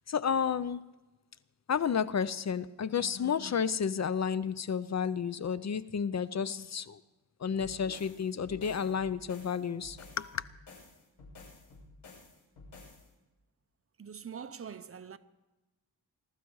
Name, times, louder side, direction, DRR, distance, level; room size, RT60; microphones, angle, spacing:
voice 1, 0.1-0.8 1.7-7.0 7.4-10.4, left 7 dB, 45° left, 0.5 m, -31 dB
sound 1, 7.6-13.1, left 3 dB, 90° left, 6.6 m, -52 dB
voice 2, 14.0-15.2, right 7 dB, 35° right, 0.7 m, -43 dB
22.5 x 12.5 x 4.7 m
wide cardioid pair, 125°, 40 cm